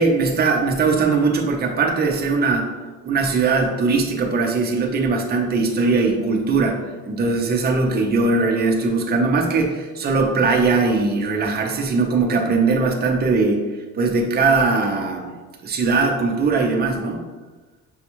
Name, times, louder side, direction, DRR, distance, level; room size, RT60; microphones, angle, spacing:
voice 1, 0.0-2.7 3.0-13.7 13.9-15.3 15.6-17.2, right 4 dB, 30° right, 1 dB, 0.5 m, -20 dB
6.2 x 2.3 x 2.9 m, 1.3 s
cardioid pair, 160°, 35 cm